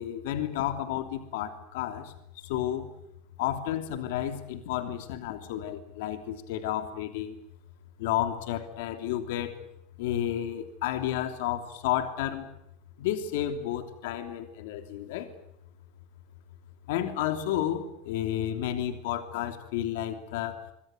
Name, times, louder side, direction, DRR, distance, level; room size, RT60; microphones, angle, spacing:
voice 1, 0.0-2.9 3.4-7.4 8.0-9.5 10.0-12.5 13.0-15.3 16.9-20.6, left 11 dB, 80° left, 9 dB, 3.1 m, -31 dB
26.0 x 24.5 x 8.0 m, 0.78 s
supercardioid pair, 155°, 0 cm